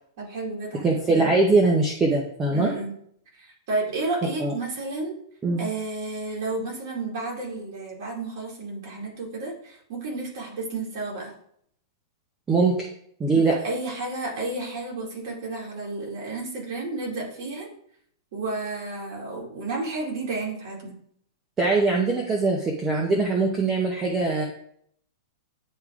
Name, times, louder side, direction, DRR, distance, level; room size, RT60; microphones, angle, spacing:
voice 1, 0.2-0.9 2.5-3.0 3.3-5.2 5.6-11.3 13.3-17.7 18.3-20.9, right 3 dB, 45° right, -2 dB, 2.4 m, -32 dB
voice 2, 0.8-2.7 4.4-4.5 5.4-5.7 12.5-12.7 13.2-13.6 21.6-24.4, right 3 dB, 10° right, -1 dB, 0.7 m, -22 dB
10.0 x 3.5 x 3.6 m, 0.66 s
supercardioid pair, 175°, 2 cm